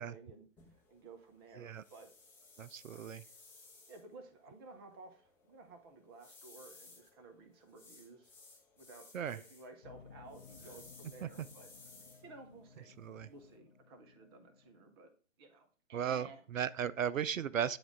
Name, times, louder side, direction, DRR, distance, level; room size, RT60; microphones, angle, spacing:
voice 1, 0.0-2.1 2.9-3.0 3.9-8.3 8.8-11.7 12.2-12.9 13.3-15.1 15.4-16.4, right 3 dB, 20° right, 6 dB, 0.8 m, -55 dB
sound 1, 0.6-13.6, left 3 dB, 5° left, 1.0 m, -60 dB
voice 2, 2.6-3.2 9.1-9.4 11.2-11.3 13.0-13.3 15.9-17.8, right 8 dB, 80° right, 16 dB, 0.5 m, -36 dB
sound 2, 9.8-14.9, left 6 dB, 40° left, 0.7 m, -58 dB
8.8 x 3.6 x 3.6 m, 0.41 s
figure-of-eight pair, 130°, 39 cm